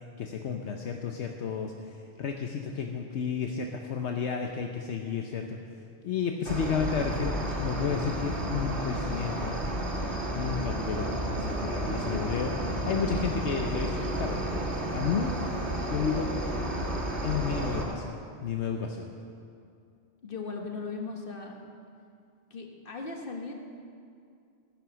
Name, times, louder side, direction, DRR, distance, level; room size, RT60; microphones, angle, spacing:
voice 1, 0.2-5.6 6.0-9.6 10.3-12.5 12.8-15.4 15.9-16.3 17.2-18.2 18.4-19.1, left 6 dB, 75° left, 3 dB, 1.1 m, -32 dB
Cricket, 6.4-17.8, right 1 dB, 70° right, 2.3 m, -32 dB
voice 2, 20.2-21.5 22.5-23.5, left 4 dB, 50° left, 2 dB, 1.6 m, -38 dB
14.0 x 10.5 x 6.3 m, 2.4 s
omnidirectional pair, 1.2 m